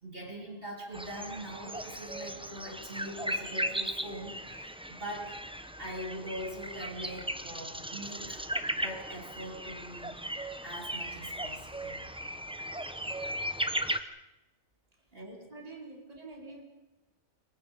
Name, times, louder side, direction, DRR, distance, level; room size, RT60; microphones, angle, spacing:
voice 1, 0.0-8.5 8.8-12.0 15.1-15.5, equal, 45° right, 0 dB, 3.5 m, -42 dB
sound 1, 0.9-14.0, equal, 5° right, 0.8 m, -37 dB
voice 2, 15.5-16.6, right 3 dB, 30° right, 0 dB, 3.6 m, -46 dB
28.5 x 23.5 x 5.3 m, 0.97 s
omnidirectional pair, 1.4 m